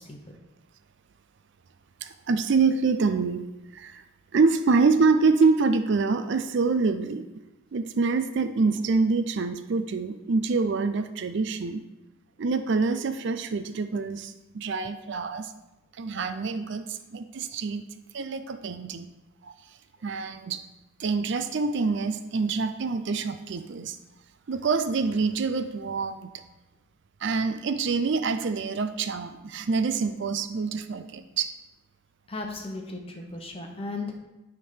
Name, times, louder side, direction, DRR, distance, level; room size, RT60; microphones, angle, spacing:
voice 1, 2.0-3.4 3.7-4.0 4.3-7.3 7.7-11.8 12.4-15.5 16.0-17.9 18.1-19.1 19.4-19.5 20.0-20.6 21.0-24.0 24.5-26.3 27.2-31.5, right 4 dB, 55° right, 10 dB, 0.4 m, -26 dB
voice 2, 32.3-34.2, left 3 dB, 25° left, 2 dB, 0.9 m, -36 dB
9.4 x 3.6 x 5.6 m, 1.0 s
head